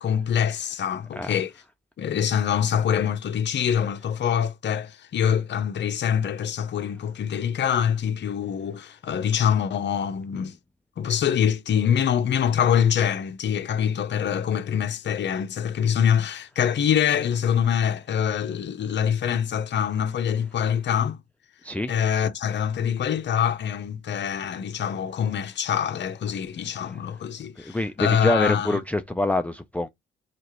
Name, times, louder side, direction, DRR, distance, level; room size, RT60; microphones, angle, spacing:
voice 1, 0.0-1.5 2.0-10.6 11.0-21.2 21.9-28.8, left 8 dB, 60° left, 0.8 m, -24 dB
voice 2, 27.6-29.9, left 1 dB, 5° left, 0.5 m, -25 dB
4.3 x 2.5 x 3.2 m
cardioid pair, 80°, 20 cm